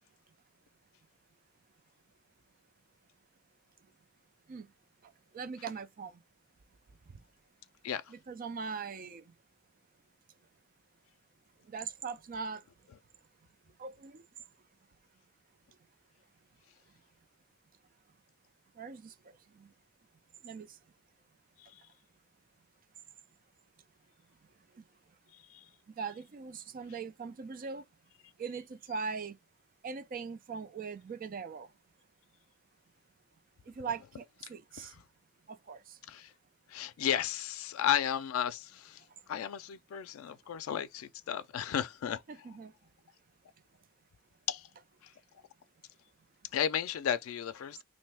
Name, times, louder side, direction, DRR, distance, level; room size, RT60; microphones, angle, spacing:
voice 1, 5.3-6.2 8.1-9.2 11.7-12.6 13.8-14.2 18.8-19.1 19.6-19.7 20.4-20.7 26.0-27.8 28.4-29.4 29.8-31.7 33.7-34.2 34.5-34.9 35.5-36.0 42.4-42.7, right 5 dB, 45° right, 0.4 m, -40 dB
voice 2, 25.3-25.7 34.8-35.0 36.1-36.3 36.7-42.2 44.5-44.7 45.0-45.1 46.5-47.8, left 9 dB, 90° left, 0.4 m, -34 dB
3.1 x 2.6 x 3.4 m
head